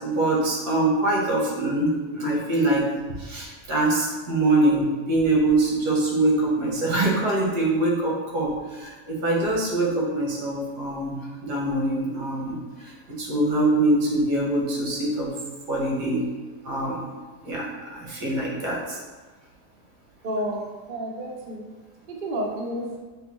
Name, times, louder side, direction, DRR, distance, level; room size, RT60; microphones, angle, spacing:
voice 1, 0.0-2.9 3.2-15.3 15.7-16.3 16.6-17.1 17.4-19.0, right 2 dB, 85° right, -4 dB, 1.6 m, -24 dB
voice 2, 20.2-20.6 20.9-21.6 22.1-23.0, right 1 dB, 60° right, -1 dB, 0.5 m, -30 dB
6.3 x 2.2 x 3.0 m, 1.3 s
omnidirectional pair, 1.7 m